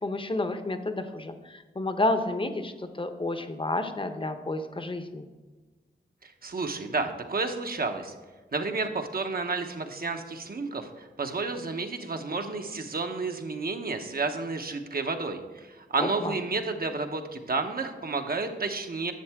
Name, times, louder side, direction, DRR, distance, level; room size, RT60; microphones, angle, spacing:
voice 1, 0.0-5.3 16.0-16.4, left 2 dB, 30° left, 9 dB, 0.9 m, -30 dB
voice 2, 6.2-8.1 8.5-19.1, right 3 dB, 55° right, 5 dB, 1.0 m, -31 dB
10.5 x 7.3 x 3.5 m, 1.3 s
cardioid pair, 45°, 19 cm